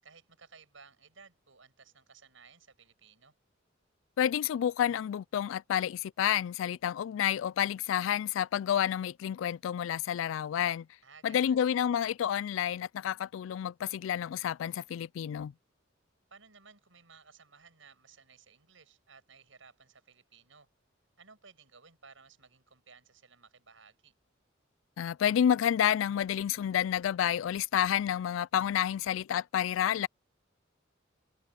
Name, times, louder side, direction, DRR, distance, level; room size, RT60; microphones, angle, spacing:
voice 1, 0.0-3.4 11.0-11.6 16.3-20.7 21.2-24.1, right 5 dB, 90° right, 6.6 m, -57 dB
voice 2, 4.2-10.9 11.2-15.5 25.0-30.1, left 9 dB, 85° left, 0.3 m, -29 dB
head